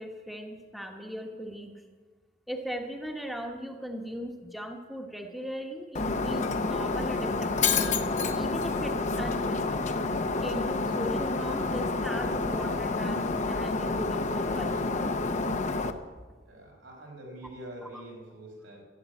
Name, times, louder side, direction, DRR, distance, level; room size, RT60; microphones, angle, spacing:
voice 1, 0.0-1.7 2.5-7.9 8.3-9.8 10.4-15.0 17.8-18.0, equal, ahead, 2 dB, 1.1 m, -38 dB
Shatter, 5.9-15.9, left 3 dB, 40° left, 0.8 m, -29 dB
voice 2, 16.5-18.8, right 1 dB, 90° right, -2 dB, 5.0 m, -45 dB
14.0 x 8.4 x 8.3 m, 1.4 s
head